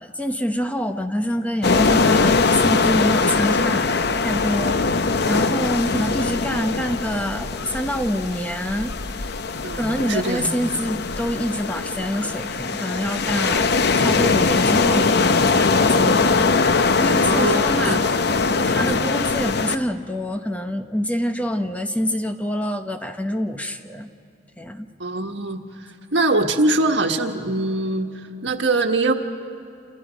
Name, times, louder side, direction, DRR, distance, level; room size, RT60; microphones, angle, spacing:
voice 1, 0.0-9.2 9.8-18.2 18.6-24.1 24.6-24.9, equal, 10° left, 6 dB, 1.0 m, -26 dB
sound 1, 1.6-19.8, left 4 dB, 65° left, 0.7 m, -21 dB
voice 2, 9.6-10.7 17.2-18.0 18.8-19.0 25.0-29.1, right 2 dB, 85° right, 4 dB, 1.6 m, -23 dB
29.0 x 28.5 x 5.2 m, 2.5 s
head